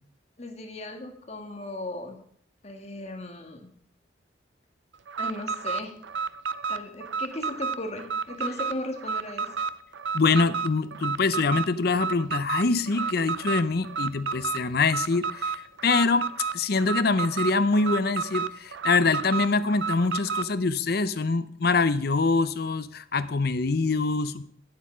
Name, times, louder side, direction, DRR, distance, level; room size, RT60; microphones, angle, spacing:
voice 1, 0.4-2.2 2.6-3.7 5.2-5.9 6.7-9.5, left 1 dB, 35° left, 3 dB, 1.6 m, -36 dB
Alarm, 5.1-20.5, right 5 dB, 75° right, 0.5 m, -31 dB
voice 2, 10.1-16.3 16.5-24.4, left 3 dB, 55° left, 13 dB, 0.6 m, -24 dB
9.3 x 8.2 x 6.2 m, 0.65 s
head